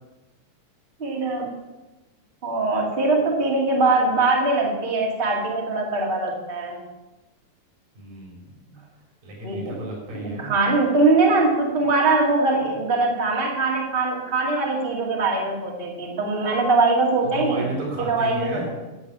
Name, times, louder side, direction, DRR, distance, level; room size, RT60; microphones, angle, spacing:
voice 1, 1.0-1.5 2.4-6.8 9.4-9.8 10.1-17.6 18.0-18.6, right 3 dB, 20° right, -2 dB, 1.9 m, -22 dB
voice 2, 8.0-8.8 9.2-10.5 17.2-18.8, right 1 dB, 75° right, -1 dB, 5.7 m, -33 dB
10.5 x 8.0 x 8.5 m, 1.1 s
omnidirectional pair, 4.0 m